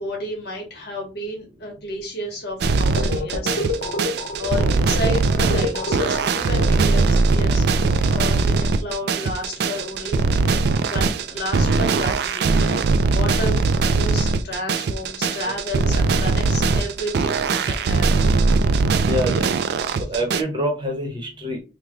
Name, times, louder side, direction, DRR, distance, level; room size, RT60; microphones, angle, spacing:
voice 1, 0.0-10.2 10.9-12.8 13.1-18.3, left 1 dB, 60° left, 0 dB, 1.4 m, -32 dB
sound 1, 2.6-20.4, right 4 dB, 60° right, 0.3 m, -20 dB
sound 2, 3.0-7.4, left 2 dB, 80° left, 0.7 m, -28 dB
voice 2, 19.1-19.5 20.1-21.6, equal, 25° right, 1 dB, 0.9 m, -26 dB
3.3 x 2.2 x 3.7 m, 0.32 s
head